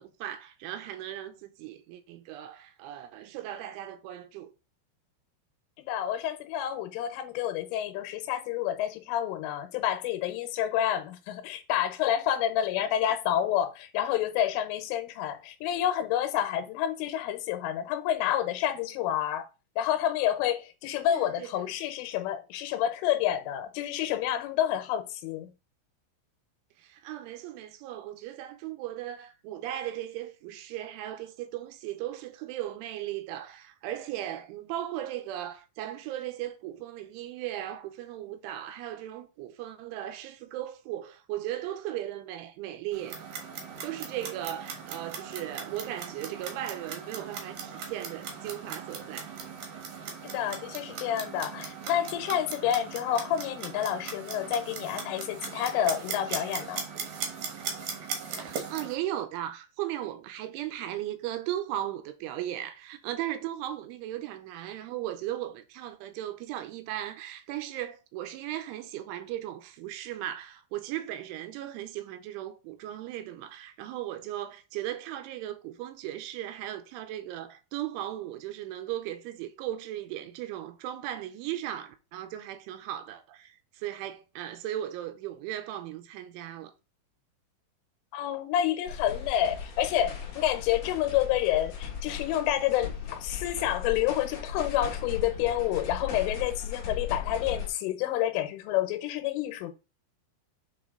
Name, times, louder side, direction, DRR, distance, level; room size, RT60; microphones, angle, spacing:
voice 1, 0.0-4.5 21.1-21.7 26.8-43.2 43.8-49.4 58.3-86.7, right 12 dB, 85° right, 3.1 m, -37 dB
voice 2, 5.8-19.5 19.8-25.5 50.2-56.9 88.1-99.7, left 11 dB, 90° left, 3.5 m, -29 dB
Clock, 42.9-58.9, right 6 dB, 60° right, 2.0 m, -39 dB
sound 1, 88.9-97.7, left 7 dB, 50° left, 2.5 m, -37 dB
8.5 x 4.0 x 3.8 m
omnidirectional pair, 5.6 m